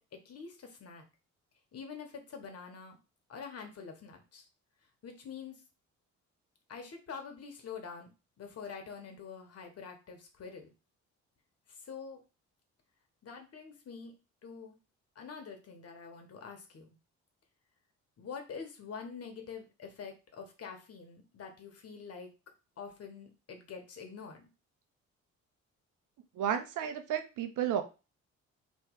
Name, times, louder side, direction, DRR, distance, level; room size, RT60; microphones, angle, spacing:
voice 1, 0.2-1.0 1.7-3.0 3.3-4.5 5.0-5.6 6.7-8.1 8.4-10.7 11.7-12.2 13.2-14.2 14.4-14.8 15.1-16.9 18.2-22.3 22.8-24.5, left 6 dB, 55° left, 4 dB, 1.3 m, -46 dB
voice 2, 26.4-27.8, right 9 dB, 85° right, 7 dB, 0.8 m, -32 dB
3.2 x 3.1 x 4.6 m, 0.30 s
cardioid pair, 90°, 30 cm